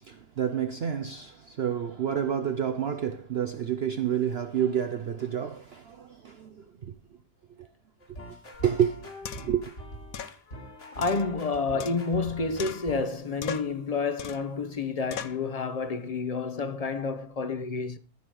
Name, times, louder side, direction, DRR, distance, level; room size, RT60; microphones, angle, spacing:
voice 1, 0.0-7.0 7.6-7.7 8.3-8.4 8.6-9.0 9.4-9.7, right 9 dB, 55° right, 0.8 m, -29 dB
sound 1, 8.0-13.1, equal, 50° left, 2.7 m, -44 dB
sound 2, 8.5-8.6 9.3-9.6 10.1-10.4 11.0-12.3 12.6-13.1 13.4-13.8 14.2-14.6 15.1-15.5, left 8 dB, 70° left, 1.2 m, -39 dB
voice 2, 10.5-18.0, left 4 dB, 30° left, 0.9 m, -30 dB
13.5 x 5.1 x 6.2 m
omnidirectional pair, 1.6 m